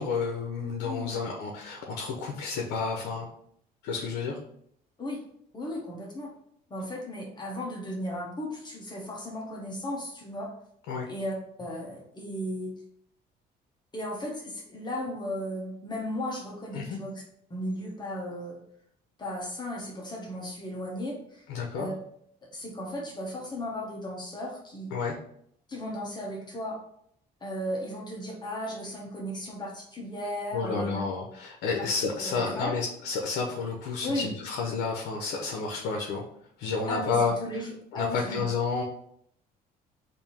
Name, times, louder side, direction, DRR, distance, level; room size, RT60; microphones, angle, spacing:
voice 1, 0.0-3.3 3.8-4.4 10.9-11.1 16.7-17.0 21.5-21.9 24.9-25.2 30.5-36.2 36.6-37.3 37.9-38.8, left 4 dB, 85° left, 1 dB, 0.7 m, -30 dB
voice 2, 0.8-1.2 5.0-5.2 5.5-6.3 6.7-10.5 11.1-12.7 13.9-17.2 17.5-18.6 19.2-21.5 21.7-21.9 22.5-24.9 25.7-26.8 27.4-31.0 32.2-32.8 34.0-34.3 36.9-38.4, left 1 dB, 25° left, -1 dB, 1.0 m, -35 dB
3.5 x 2.7 x 4.2 m, 0.69 s
cardioid pair, 110°, 17 cm